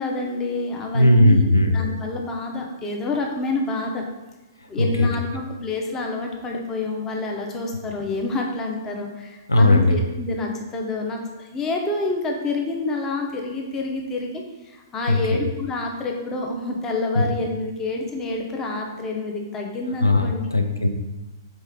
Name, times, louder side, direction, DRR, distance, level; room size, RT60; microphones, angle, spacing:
voice 1, 0.0-4.0 4.7-20.5, left 2 dB, 20° left, 1 dB, 0.6 m, -28 dB
voice 2, 0.9-1.7 4.8-4.9 9.5-9.9 15.1-15.2 20.0-20.9, left 1 dB, 85° left, 5 dB, 0.4 m, -17 dB
3.9 x 3.1 x 3.6 m, 1.1 s
figure-of-eight pair, 115°, 2 cm